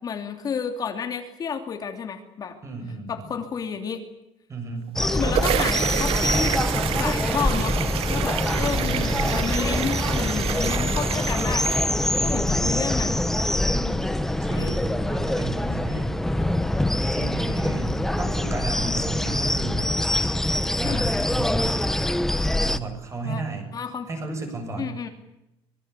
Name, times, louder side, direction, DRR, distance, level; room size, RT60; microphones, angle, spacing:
voice 1, 0.0-2.6 3.1-4.0 5.0-7.8 8.1-11.7 12.2-13.2 13.7-14.1 14.5-14.8 20.8-21.0 23.2-23.4 23.7-24.1 24.8-25.1, left 6 dB, 35° left, 5 dB, 3.0 m, -31 dB
voice 2, 2.6-3.3 4.5-4.9 8.5-9.3 12.2-13.1 14.2-16.1 17.1-19.9 20.8-21.7 22.6-23.7 24.1-24.9, right 3 dB, 25° right, 6 dB, 7.2 m, -34 dB
sound 1, 4.9-12.4, right 13 dB, 60° right, 1.1 m, -29 dB
sound 2, 5.0-22.8, left 1 dB, 5° left, 1.2 m, -24 dB
25.5 x 23.0 x 8.4 m, 0.87 s
cardioid pair, 165°, 11 cm